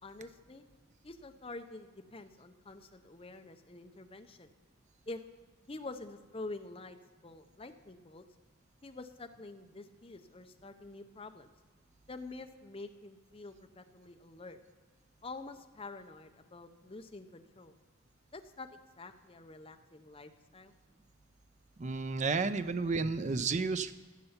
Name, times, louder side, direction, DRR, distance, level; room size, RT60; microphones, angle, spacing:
voice 1, 0.0-0.6 1.0-4.5 5.1-5.2 5.7-8.2 8.8-11.5 12.1-14.6 15.2-17.7 18.3-20.7, left 2 dB, 25° left, 7 dB, 0.7 m, -47 dB
voice 2, 21.8-23.9, right 4 dB, 35° right, 11 dB, 0.5 m, -32 dB
15.5 x 6.9 x 5.7 m, 1.4 s
head